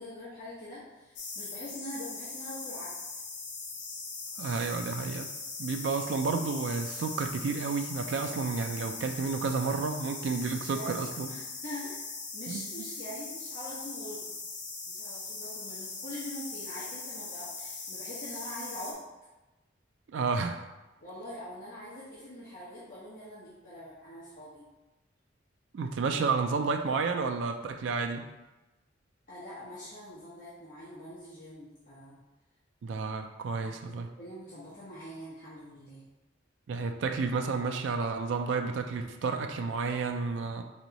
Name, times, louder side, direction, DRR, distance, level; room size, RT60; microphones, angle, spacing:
voice 1, 0.0-2.9 10.7-12.0 12.3-14.3 14.9-19.0 21.0-24.6 29.3-32.2 33.6-36.0, left 1 dB, 45° left, -11 dB, 1.2 m, -44 dB
sound 1, 1.2-18.9, left 4 dB, 75° left, 0.9 m, -40 dB
voice 2, 4.4-5.3 5.6-11.3 12.5-12.6 20.1-20.7 25.7-28.3 32.8-34.1 36.7-40.6, right 4 dB, 75° right, 5 dB, 0.3 m, -31 dB
3.5 x 3.1 x 4.0 m, 1.1 s
head